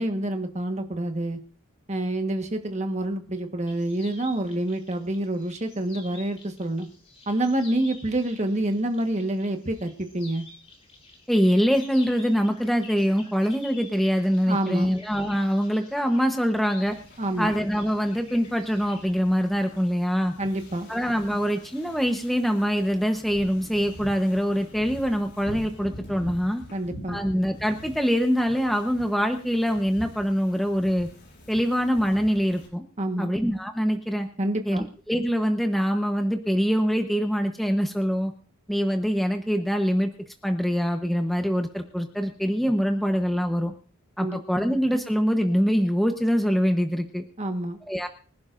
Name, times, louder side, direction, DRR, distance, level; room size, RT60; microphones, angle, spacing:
voice 1, 0.0-1.4 1.9-6.9 7.3-10.4 14.5-14.9 17.2-17.5 20.4-20.9 26.7-27.2 33.0-33.3 34.4-34.8 44.2-44.4 47.4-47.8, right 1 dB, 30° right, 5 dB, 1.3 m, -27 dB
sound 1, 3.7-19.1, left 2 dB, 25° left, 3.8 m, -49 dB
voice 2, 11.3-17.0 17.4-20.3 20.9-26.6 27.1-31.1 31.5-32.8 33.2-34.3 34.6-38.3 38.7-40.1 40.4-43.7 44.2-47.2 47.9-48.1, equal, ahead, 4 dB, 0.9 m, -24 dB
Wind / Ocean, 16.9-32.7, equal, 50° left, 5.4 m, -45 dB
25.0 x 11.0 x 2.6 m, 0.41 s
head